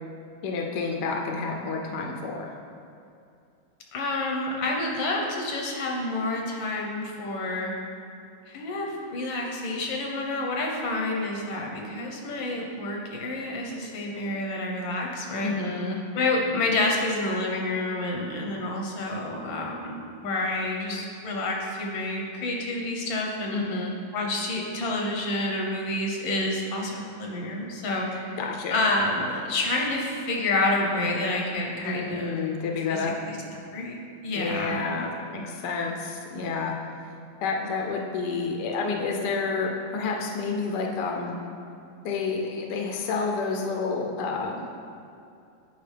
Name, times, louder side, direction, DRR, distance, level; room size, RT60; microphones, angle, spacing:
voice 1, 0.4-2.5 15.4-16.0 23.5-23.9 28.4-28.8 31.8-33.2 34.3-36.7 37.4-41.4 42.0-44.7, left 4 dB, 70° left, 1 dB, 1.2 m, -29 dB
voice 2, 3.9-7.7 8.5-15.5 16.2-23.7 24.1-28.4 28.7-32.4 32.9-33.4 33.7-34.9, left 2 dB, 85° left, 0 dB, 1.7 m, -29 dB
8.6 x 5.1 x 3.3 m, 2.5 s
omnidirectional pair, 2.1 m